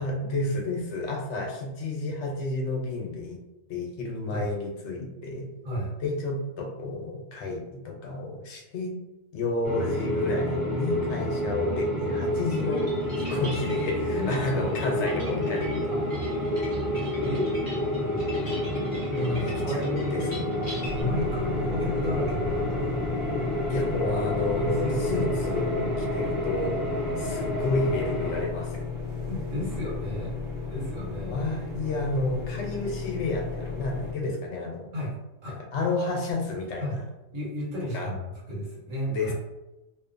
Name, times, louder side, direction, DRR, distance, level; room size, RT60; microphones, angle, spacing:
voice 1, 0.0-3.4 3.7-5.5 6.0-8.9 9.3-12.9 13.3-15.9 19.4-20.5 23.7-26.8 27.2-29.0 31.3-34.9 35.5-37.0 37.9-38.1 39.1-39.3, left 2 dB, 70° left, 0 dB, 0.9 m, -31 dB
voice 2, 5.6-6.0 14.1-14.4 14.8-15.3 15.9-16.2 17.2-17.5 19.1-20.3 21.0-23.0 24.6-25.3 29.3-30.4 30.6-31.4 34.9-35.1 35.4-35.6 36.8-37.0 37.3-39.3, equal, 80° right, -4 dB, 1.3 m, -33 dB
sound 1, 9.6-28.4, left 1 dB, 40° right, 0.8 m, -29 dB
sound 2, 12.5-21.0, equal, 20° left, 0.7 m, -43 dB
sound 3, 20.8-34.1, left 5 dB, ahead, 0.4 m, -35 dB
2.6 x 2.2 x 2.4 m, 0.98 s
omnidirectional pair, 1.3 m